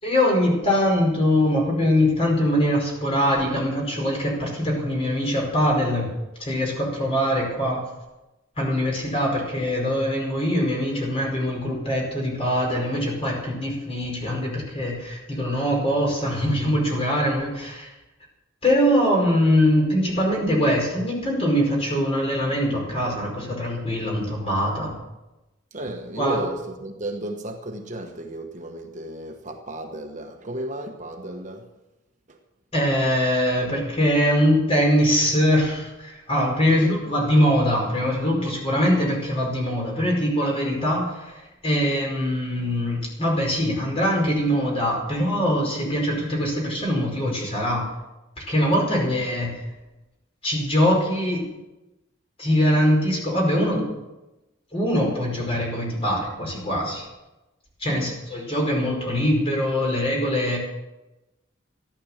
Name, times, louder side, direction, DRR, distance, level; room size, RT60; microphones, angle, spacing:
voice 1, 0.0-6.1 6.4-7.8 8.6-17.9 18.6-24.9 26.2-26.4 32.7-47.9 48.5-49.6 50.4-51.5 52.4-53.9 54.7-57.0 57.8-60.6, equal, 25° left, 5.0 m, -22 dB
voice 2, 25.7-31.7 32.3-32.4 36.7-36.8 57.9-58.2, right 1 dB, 35° right, 1.1 m, -34 dB
15.0 x 10.5 x 7.3 m
head